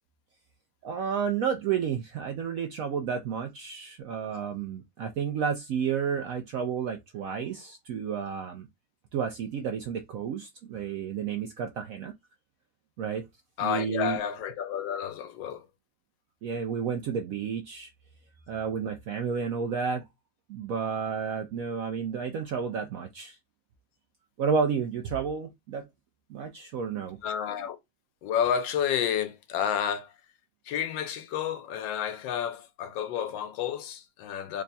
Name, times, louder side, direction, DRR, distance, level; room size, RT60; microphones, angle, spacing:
voice 1, 0.8-8.7 9.1-12.1 13.0-13.3 13.6-14.2 16.4-17.9 18.5-20.0 20.5-23.4 24.4-25.9 26.3-27.2, right 6 dB, 75° right, 0.7 m, -31 dB
voice 2, 13.6-15.7 27.2-27.8 28.2-30.1 30.7-34.6, left 9 dB, 85° left, 1.3 m, -30 dB
3.5 x 2.2 x 3.9 m
omnidirectional pair, 2.0 m